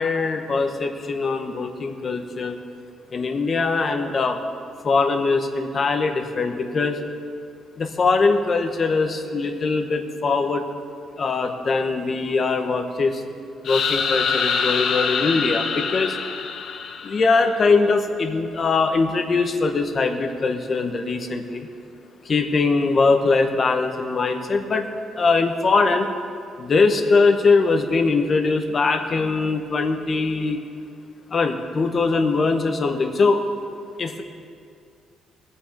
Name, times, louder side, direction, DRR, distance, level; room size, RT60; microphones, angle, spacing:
voice 1, 0.0-2.6 3.1-4.4 4.8-7.0 7.8-10.6 11.2-13.2 13.6-16.2 17.0-21.7 22.2-24.9 25.2-26.1 26.6-30.6 31.3-33.4 34.0-34.2, left 4 dB, 35° left, 5 dB, 1.1 m, -21 dB
sound 1, 13.7-17.5, left 5 dB, 55° left, 0.8 m, -25 dB
21.5 x 7.3 x 4.7 m, 2.4 s
cardioid pair, 140°, 0 cm